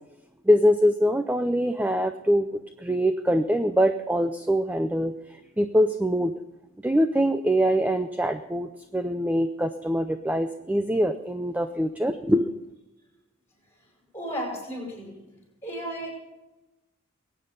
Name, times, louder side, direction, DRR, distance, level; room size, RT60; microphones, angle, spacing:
voice 1, 0.5-6.3 6.8-12.6, equal, 5° right, 9 dB, 0.4 m, -24 dB
voice 2, 14.1-16.1, equal, 10° left, -1 dB, 5.6 m, -35 dB
22.0 x 8.9 x 5.2 m, 1.0 s
head